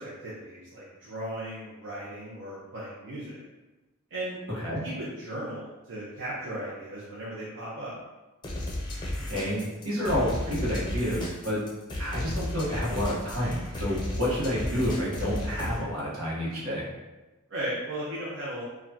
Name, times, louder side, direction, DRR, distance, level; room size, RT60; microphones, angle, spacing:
voice 1, 0.0-3.4 4.1-4.4 4.8-7.9 17.5-18.6, right 1 dB, 60° right, -8 dB, 0.7 m, -36 dB
sound 1, 8.4-15.8, left 1 dB, 20° left, 0.6 m, -33 dB
voice 2, 9.2-11.6 12.0-16.9, equal, 75° right, -6 dB, 1.2 m, -29 dB
4.8 x 2.2 x 2.8 m, 1.1 s
head